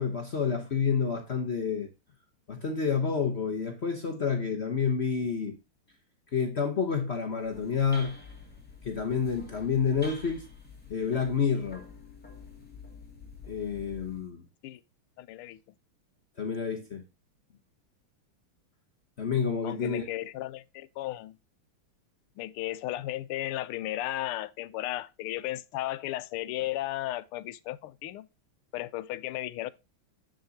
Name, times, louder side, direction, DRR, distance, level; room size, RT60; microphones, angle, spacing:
voice 1, 0.0-1.9 2.5-5.6 6.3-8.2 8.8-10.4 10.9-11.8 13.5-14.4 16.4-17.0 19.2-20.0, left 6 dB, 50° left, 0.8 m, -29 dB
sound 1, 7.3-14.3, left 4 dB, 5° left, 2.3 m, -48 dB
voice 2, 15.2-15.6 19.6-21.3 22.4-28.3 28.7-29.7, left 15 dB, 90° left, 1.5 m, -35 dB
8.5 x 6.4 x 2.7 m
omnidirectional pair, 2.4 m